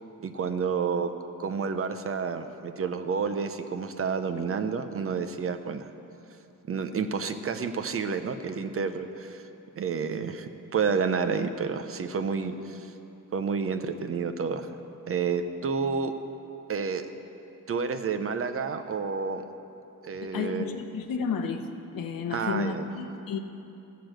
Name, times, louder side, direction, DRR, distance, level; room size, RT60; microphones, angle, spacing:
voice 1, 0.2-1.1 1.4-5.9 6.7-9.4 9.8-12.9 13.3-14.7 15.1-16.1 16.7-17.1 17.7-19.4 20.0-20.8 22.3-22.8, right 5 dB, 40° right, 8 dB, 0.7 m, -30 dB
voice 2, 20.2-23.4, left 6 dB, 80° left, 6 dB, 1.0 m, -32 dB
15.0 x 6.8 x 7.8 m, 2.8 s
cardioid pair, 135°, 34 cm